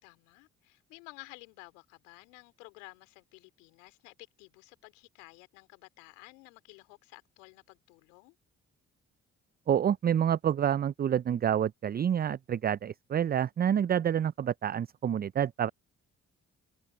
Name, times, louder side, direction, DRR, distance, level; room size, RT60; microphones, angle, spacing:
voice 1, 0.0-8.3, left 28 dB, 85° left, 2.9 m, -53 dB
voice 2, 9.7-15.7, right 9 dB, 25° right, 0.4 m, -28 dB
hypercardioid pair, 45°, 37 cm